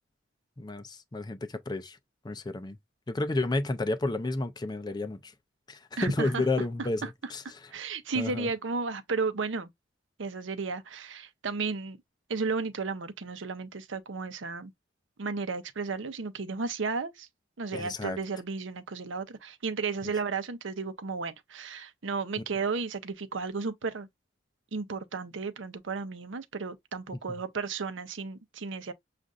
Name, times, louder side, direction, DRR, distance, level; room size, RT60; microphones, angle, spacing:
voice 1, 0.6-2.0 2.2-2.8 3.1-5.3 5.7-7.7 8.1-8.5 17.7-18.2 20.0-20.1 27.3-27.4, left 2 dB, 20° left, 0.4 m, -31 dB
voice 2, 6.0-6.4 7.0-7.1 7.7-9.7 10.2-12.0 12.3-14.7 15.2-17.3 17.6-24.1 24.7-28.9, right 4 dB, 75° right, 0.7 m, -33 dB
6.4 x 2.5 x 2.4 m
head